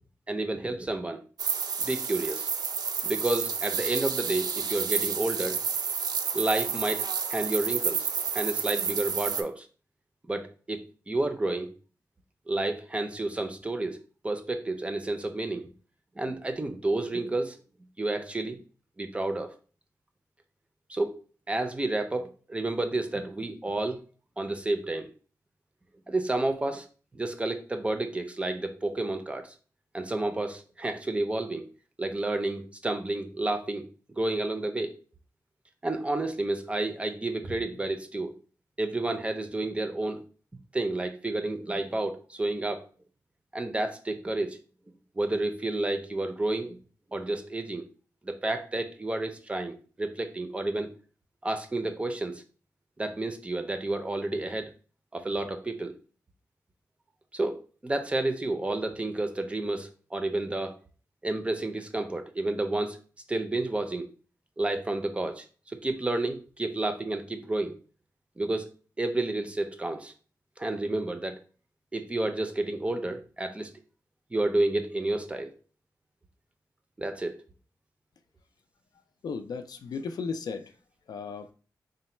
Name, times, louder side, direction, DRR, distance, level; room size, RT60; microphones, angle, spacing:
voice 1, 0.3-1.2 1.8-2.5 3.0-5.6 6.3-8.1 8.3-9.7 10.3-11.7 12.5-14.0 14.2-15.7 16.2-17.6 18.0-18.6 19.0-19.5 20.9-21.2 21.5-24.0 24.4-25.1 26.1-26.9 27.1-29.5 29.9-31.7 32.0-33.8 34.1-35.0 35.8-38.3 38.8-40.2 40.7-42.8 43.5-44.6 45.2-46.8 47.1-47.8 48.2-50.9 51.4-52.4 53.0-54.7 55.1-55.9 57.3-60.8 61.2-63.0 63.3-64.1 64.6-67.8 68.4-68.7 69.0-70.1 70.6-71.4 71.9-73.7 74.3-75.5 77.0-77.4, right 2 dB, 20° right, 0.4 m, -30 dB
sound 1, 1.4-9.4, right 6 dB, 80° right, 0.4 m, -30 dB
voice 2, 79.2-80.7 81.1-81.5, left 5 dB, 80° left, 0.4 m, -35 dB
3.9 x 2.1 x 4.3 m
wide cardioid pair, 170°, 7 cm